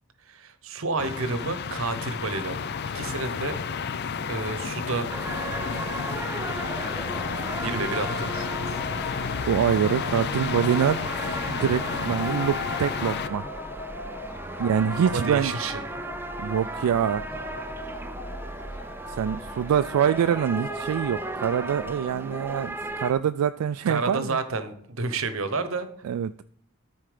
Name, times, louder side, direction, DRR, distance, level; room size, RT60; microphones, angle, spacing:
voice 1, 0.2-2.7 2.9-3.6 4.3-5.1 7.6-8.8 15.1-16.0 23.9-25.9, right 3 dB, 60° right, 10 dB, 0.9 m, -30 dB
sound 1, 1.0-13.3, left 6 dB, 45° left, 0.4 m, -31 dB
sound 2, 5.1-23.1, right 2 dB, 10° right, 0.4 m, -36 dB
sound 3, 6.4-22.6, left 3 dB, 75° left, 1.2 m, -40 dB
voice 2, 9.5-11.1 11.5-13.4 14.6-15.5 16.4-17.2 19.1-24.4 26.0-26.3, right 8 dB, 85° right, 12 dB, 0.3 m, -25 dB
13.0 x 4.4 x 5.0 m, 0.65 s
head